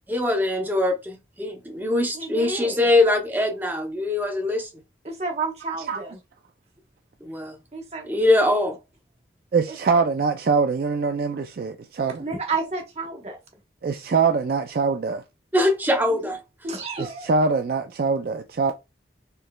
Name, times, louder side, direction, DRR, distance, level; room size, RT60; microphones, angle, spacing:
voice 1, 0.1-4.7 7.2-7.5 8.0-8.8 15.5-16.4, left 1 dB, 10° right, 0.7 m, -22 dB
voice 2, 2.1-2.8 5.0-6.2 7.7-8.1 9.9-10.0 12.2-13.4 16.2-16.3 16.6-17.3, right 3 dB, 35° right, 1.1 m, -31 dB
voice 3, 9.5-12.2 13.8-15.2 17.0-18.7, right 4 dB, 55° right, 0.3 m, -23 dB
4.5 x 3.1 x 2.2 m
head